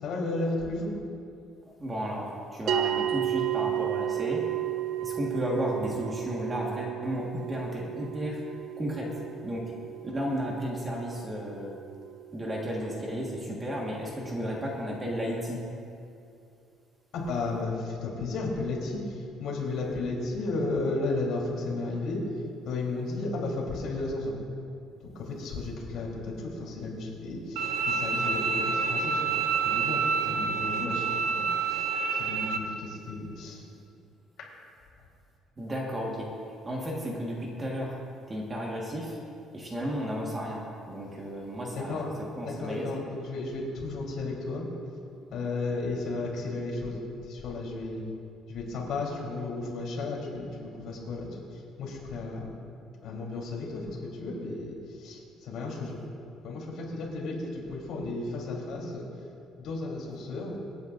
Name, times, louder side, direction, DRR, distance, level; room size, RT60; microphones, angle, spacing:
voice 1, 0.0-0.9 17.1-22.2 22.6-24.3 25.1-29.4 29.6-33.6 34.4-34.5 41.7-44.7 45.3-48.0 48.5-51.4 51.8-52.5 53.0-56.0 56.4-59.0 59.6-60.6, left 3 dB, 60° left, -3 dB, 3.4 m, -34 dB
voice 2, 1.8-4.5 5.0-8.4 8.8-9.6 10.0-11.8 12.3-15.6 35.6-36.3 36.6-38.0 38.3-39.2 39.5-42.1 42.3-42.9, equal, 20° right, -2 dB, 1.5 m, -33 dB
sound 1, 2.7-13.2, right 13 dB, 60° right, 0.5 m, -33 dB
Bowed string instrument, 27.6-32.6, right 5 dB, 80° right, 0.9 m, -28 dB
26.5 x 9.6 x 2.5 m, 2.5 s
cardioid pair, 165°, 0 cm